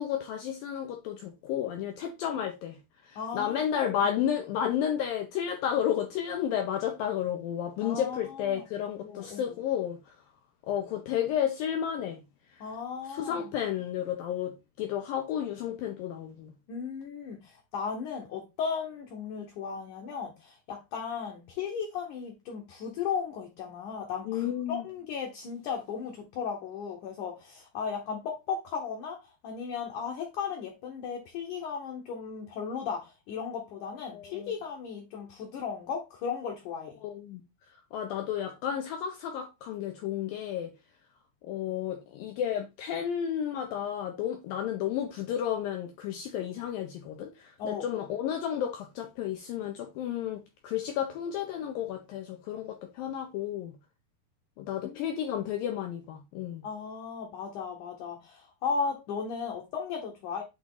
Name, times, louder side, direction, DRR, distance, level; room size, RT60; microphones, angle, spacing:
voice 1, 0.0-10.0 10.7-12.2 12.5-12.7 13.1-16.5 24.3-24.8 34.1-34.5 37.0-37.4 37.9-40.7 41.4-53.7 54.6-56.6, left 9 dB, 90° left, 2.0 m, -32 dB
voice 2, 3.2-4.1 7.8-8.6 9.0-9.6 12.6-13.4 16.7-37.0 47.6-48.0 54.8-55.2 56.6-60.4, left 6 dB, 70° left, 1.9 m, -36 dB
8.4 x 3.1 x 3.7 m
omnidirectional pair, 4.9 m